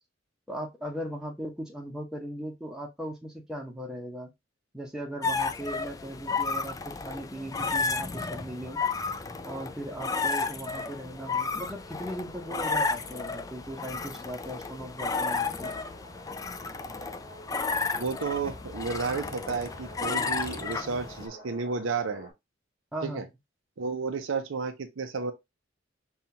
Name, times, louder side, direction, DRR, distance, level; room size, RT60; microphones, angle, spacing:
voice 1, 0.5-4.3 4.7-8.8 9.4-15.7 22.9-23.3, right 1 dB, 5° right, 0.8 m, -38 dB
sound 1, 5.2-21.3, left 4 dB, 20° left, 0.3 m, -32 dB
sound 2, 8.5-22.3, equal, 55° left, 1.8 m, -51 dB
voice 2, 18.0-22.3 23.0-23.2 23.8-25.3, right 4 dB, 85° right, 0.6 m, -32 dB
5.4 x 2.4 x 2.8 m
head